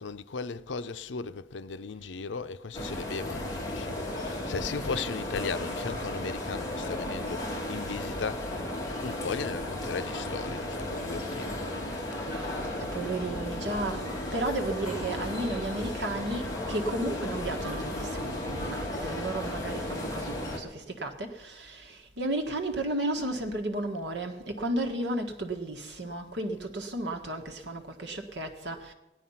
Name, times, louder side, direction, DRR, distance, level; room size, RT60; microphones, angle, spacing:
voice 1, 0.0-8.5 9.0-11.6, left 4 dB, 90° left, 0.6 m, -37 dB
sound 1, 2.7-20.6, left 1 dB, 20° left, 2.4 m, -34 dB
voice 2, 12.3-28.9, right 1 dB, 75° right, 1.7 m, -33 dB
16.5 x 11.0 x 5.7 m
head